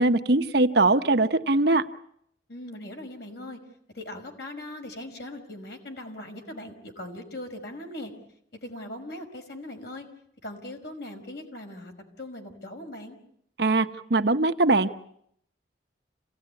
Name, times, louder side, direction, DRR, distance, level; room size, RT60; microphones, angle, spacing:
voice 1, 0.0-1.8 13.6-14.9, right 2 dB, 60° right, 7 dB, 1.1 m, -21 dB
voice 2, 2.5-3.6 3.9-8.1 8.6-10.1 10.4-11.9 12.2-13.2, left 1 dB, 60° left, 3 dB, 5.1 m, -40 dB
28.0 x 17.5 x 9.8 m, 0.71 s
head